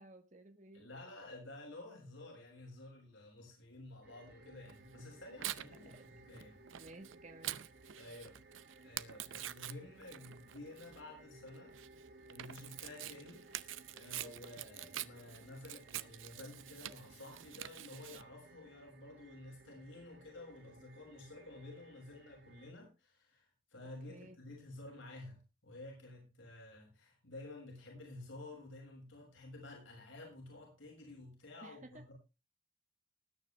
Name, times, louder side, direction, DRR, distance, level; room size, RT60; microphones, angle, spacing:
voice 1, 0.0-0.9 5.8-6.1 6.8-7.7 24.1-24.4 31.6-32.0, right 2 dB, 40° right, 6 dB, 1.5 m, -55 dB
voice 2, 0.7-6.6 8.0-11.7 12.3-13.4 13.9-32.1, left 2 dB, 85° left, 0 dB, 6.7 m, -52 dB
sound 1, 4.0-22.7, right 2 dB, 55° right, 1.7 m, -61 dB
Tearing, 4.7-18.2, right 12 dB, 90° right, 0.7 m, -47 dB
19.5 x 9.6 x 3.5 m, 0.30 s
head